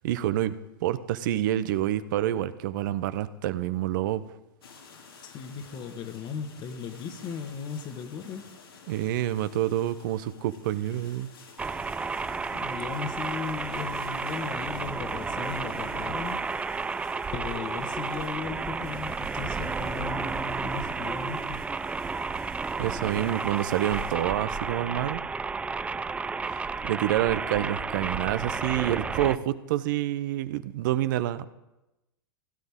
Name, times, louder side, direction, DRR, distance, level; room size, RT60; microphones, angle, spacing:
voice 1, 0.0-0.5 0.8-4.2 8.9-11.3 22.8-25.2 26.5-31.4, right 13 dB, 60° right, 14 dB, 0.7 m, -28 dB
sound 1, 4.6-24.2, left 5 dB, 80° left, 2.5 m, -52 dB
voice 2, 5.2-8.5 12.5-16.6 17.3-21.7, left 6 dB, 40° left, 8 dB, 1.5 m, -37 dB
sound 2, 11.6-29.4, right 4 dB, 10° right, 0.3 m, -32 dB
16.5 x 11.0 x 3.6 m, 0.97 s
hypercardioid pair, 100°, 12 cm